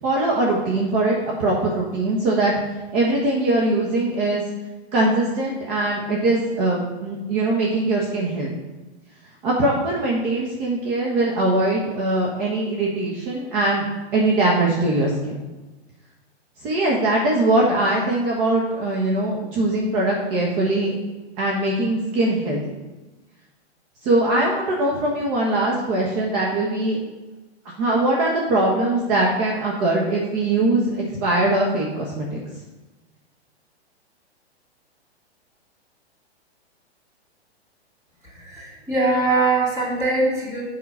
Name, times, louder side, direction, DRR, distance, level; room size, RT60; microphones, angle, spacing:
voice 1, 0.0-2.5 2.9-4.4 4.9-8.5 9.4-13.8 14.1-15.4 16.6-21.0 21.4-22.6 24.0-27.0 27.8-32.4, right 2 dB, 35° right, -3 dB, 1.5 m, -21 dB
voice 2, 38.3-40.6, right 3 dB, 10° right, -5 dB, 2.8 m, -22 dB
7.2 x 6.0 x 5.7 m, 1.2 s
hypercardioid pair, 140°, 33 cm